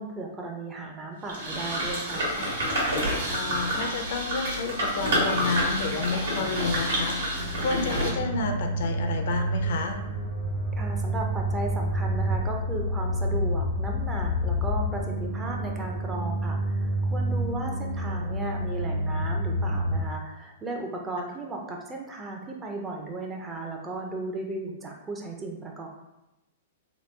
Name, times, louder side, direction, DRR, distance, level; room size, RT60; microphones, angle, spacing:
voice 1, 0.0-2.3 10.8-25.9, right 2 dB, 15° right, 1 dB, 0.4 m, -35 dB
sound 1, 1.3-8.1, equal, 80° right, 1.2 m, -28 dB
voice 2, 3.3-10.0, left 4 dB, 65° left, 5 dB, 0.5 m, -30 dB
sound 2, 7.3-20.0, equal, 40° right, 0.8 m, -29 dB
2.9 x 2.2 x 3.2 m, 0.93 s
hypercardioid pair, 145°, 0 cm